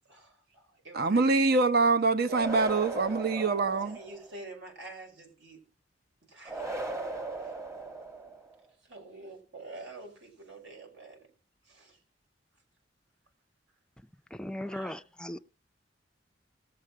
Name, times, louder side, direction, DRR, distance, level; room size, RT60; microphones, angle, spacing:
voice 1, 0.1-1.8 3.3-5.6 6.3-7.1 7.4-7.5 8.8-11.2 11.6-12.0 14.6-15.0 15.3-15.4, right 2 dB, 75° right, 5.3 m, -48 dB
voice 2, 0.9-4.0, right 3 dB, 55° right, 0.9 m, -25 dB
sound 1, 2.3-4.4 6.5-8.5, right 2 dB, 15° right, 1.2 m, -37 dB
voice 3, 14.4-15.4, left 1 dB, 5° left, 0.5 m, -37 dB
19.5 x 7.6 x 4.8 m
head